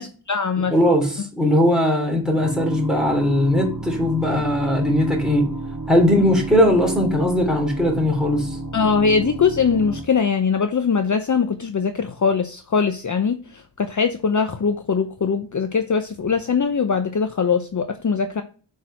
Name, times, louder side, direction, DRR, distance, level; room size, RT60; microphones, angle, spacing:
voice 1, 0.0-0.7 8.7-18.4, left 5 dB, 40° left, 0.8 m, -21 dB
voice 2, 0.6-5.5 5.9-8.6, left 1 dB, ahead, 3.5 m, -19 dB
sound 1, 2.4-10.0, right 3 dB, 45° right, 3.2 m, -31 dB
6.1 x 4.7 x 5.7 m
cardioid pair, 70°, 44 cm